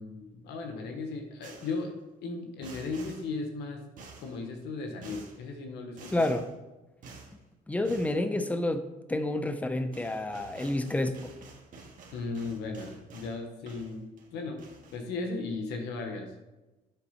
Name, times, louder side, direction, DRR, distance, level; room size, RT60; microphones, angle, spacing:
voice 1, 0.0-1.9 2.2-3.8 4.2-6.3 12.1-14.6 14.9-16.3, left 3 dB, 80° left, 4 dB, 1.1 m, -36 dB
sound 1, 1.4-1.8 2.6-3.3 4.0-4.4 5.0-5.4 6.0-6.5 7.0-7.3 7.8-8.2 9.6-9.7 9.9-13.4 13.7-14.3 14.6-15.0, right 4 dB, 50° right, 1.7 m, -49 dB
voice 2, 6.1-6.5 7.7-11.2, left 1 dB, 10° left, 9 dB, 0.6 m, -29 dB
8.3 x 4.0 x 5.6 m, 1.1 s
cardioid pair, 110°, 17 cm